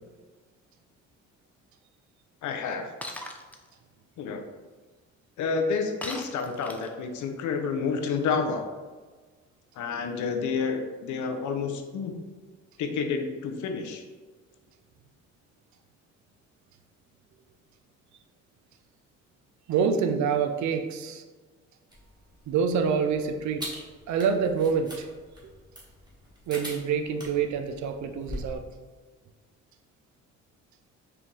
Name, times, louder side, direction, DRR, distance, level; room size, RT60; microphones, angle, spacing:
voice 1, 2.4-2.9 4.2-4.4 5.4-8.7 9.8-12.2 12.8-14.0, left 5 dB, 75° left, 5 dB, 0.6 m, -29 dB
Shatter, 3.0-3.6 6.0-7.0, left 1 dB, 5° left, 0.4 m, -38 dB
voice 2, 19.7-21.2 22.5-23.6 24.1-25.1 26.5-28.6, right 6 dB, 70° right, 7 dB, 0.5 m, -26 dB
sound 1, 21.9-28.6, equal, 15° right, 1.3 m, -43 dB
4.4 x 2.5 x 3.6 m, 1.4 s
cardioid pair, 90°, 30 cm